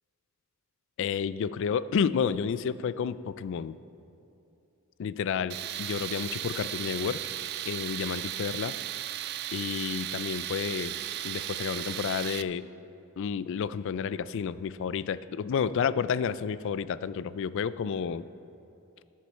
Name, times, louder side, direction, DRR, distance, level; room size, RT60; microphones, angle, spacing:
voice 1, 1.0-3.7 5.0-7.2 7.7-8.8 9.5-10.9 11.2-12.7 13.2-18.2, left 6 dB, 60° left, 16 dB, 0.3 m, -30 dB
Tools, 5.5-12.4, right 12 dB, 50° right, 0.3 m, -36 dB
18.5 x 6.5 x 4.4 m, 2.8 s
head